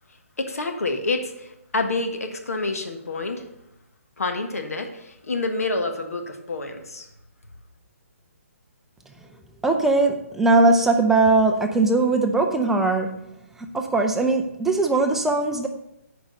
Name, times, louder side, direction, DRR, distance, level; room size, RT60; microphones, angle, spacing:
voice 1, 0.4-3.4 4.2-7.1, left 3 dB, 85° left, 5 dB, 1.5 m, -28 dB
voice 2, 9.6-13.2 13.6-15.7, right 3 dB, 5° right, 3 dB, 0.5 m, -20 dB
8.6 x 5.1 x 6.8 m, 0.83 s
hypercardioid pair, 155°, 8 cm